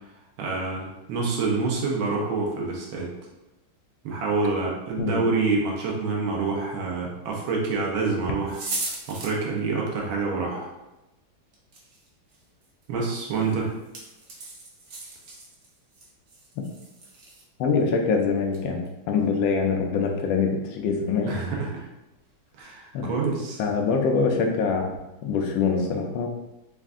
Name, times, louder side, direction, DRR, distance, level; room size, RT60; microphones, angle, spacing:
voice 1, 0.4-3.1 4.0-8.6 9.1-10.7 12.9-13.7 21.3-21.9 22.6-23.6, right 4 dB, 85° right, -1 dB, 1.7 m, -27 dB
sound 1, 7.5-7.6 8.5-9.3 11.5-17.4 17.8-17.9 18.5-18.9 19.2-19.3 22.2-22.3 22.6-22.7, right 2 dB, 65° right, 0.7 m, -38 dB
voice 2, 17.6-21.4 22.9-23.1 23.6-25.0 25.2-26.3, left 5 dB, 75° left, 2 dB, 1.3 m, -24 dB
4.4 x 2.5 x 3.5 m, 0.98 s
omnidirectional pair, 2.2 m